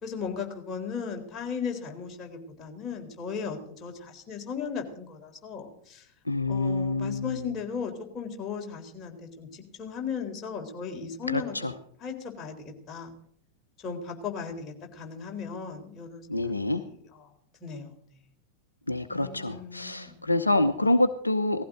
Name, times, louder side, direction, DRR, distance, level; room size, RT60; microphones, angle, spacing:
voice 1, 0.0-6.1 6.5-11.7 12.0-13.1 13.8-16.3 16.7-17.0 17.6-17.9 19.1-20.2, left 6 dB, 25° left, 1 dB, 4.0 m, -36 dB
voice 2, 6.3-7.5 11.3-11.7 16.3-16.8 18.9-21.6, left 2 dB, 80° left, 10 dB, 0.9 m, -26 dB
18.5 x 15.5 x 3.9 m, 0.64 s
figure-of-eight pair, 90°, 0 cm